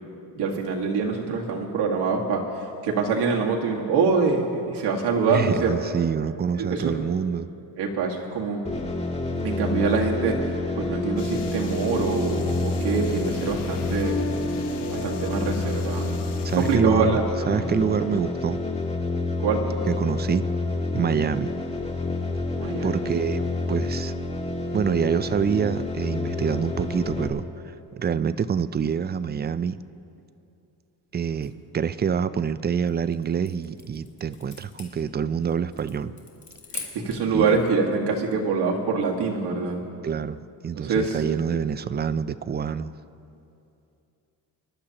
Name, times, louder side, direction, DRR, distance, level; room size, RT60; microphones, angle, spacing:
voice 1, 0.3-5.7 6.6-6.9 7.8-8.8 9.4-10.4 10.8-14.2 14.9-16.2 16.5-17.3 19.4-19.7 22.6-23.1 36.7-39.8 40.8-41.2, right 4 dB, 75° right, 0 dB, 1.9 m, -25 dB
voice 2, 5.3-7.5 16.4-17.2 17.5-18.6 19.9-20.5 20.9-21.5 22.8-23.4 23.7-24.1 24.7-27.5 28.0-29.8 31.1-36.1 37.3-37.6 40.0-42.9, right 7 dB, 25° right, 15 dB, 0.4 m, -26 dB
sound 1, 8.7-27.3, left 2 dB, 15° left, 1.9 m, -28 dB
sound 2, 11.2-16.8, left 2 dB, 85° left, 1.4 m, -35 dB
sound 3, 32.7-37.3, left 5 dB, 45° left, 2.8 m, -43 dB
26.0 x 11.5 x 2.9 m, 2.7 s
cardioid pair, 90°, 40 cm